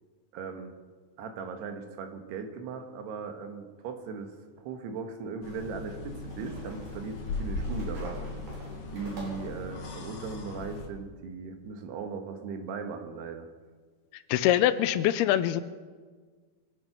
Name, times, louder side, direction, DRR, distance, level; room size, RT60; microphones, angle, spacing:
voice 1, 0.3-0.7 1.2-4.3 4.6-8.4 8.9-13.5, right 5 dB, 85° right, 5 dB, 3.5 m, -38 dB
sound 1, 4.3-4.4 6.2-9.6, right 1 dB, 60° right, 5.6 m, -46 dB
sound 2, 5.4-10.9, left 3 dB, 60° left, 3.4 m, -38 dB
voice 2, 14.3-15.6, left 12 dB, 80° left, 13 dB, 2.5 m, -23 dB
23.5 x 9.2 x 5.9 m, 1.5 s
omnidirectional pair, 4.6 m